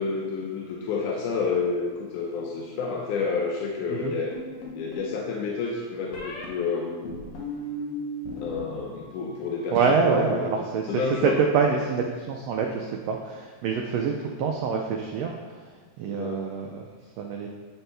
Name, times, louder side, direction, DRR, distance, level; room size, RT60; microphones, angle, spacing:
voice 1, 0.0-7.2 8.4-10.5 10.9-11.3 13.9-14.1 16.1-16.4, left 5 dB, 90° left, -1 dB, 2.2 m, -30 dB
sound 1, 4.3-5.1 6.1-6.5 7.0-8.6 8.9-9.4, equal, 60° left, 1.8 m, -36 dB
voice 2, 9.7-15.7 16.0-16.9 17.2-17.5, right 5 dB, 85° right, 2 dB, 1.4 m, -26 dB
9.3 x 4.4 x 3.3 m, 1.5 s
omnidirectional pair, 3.5 m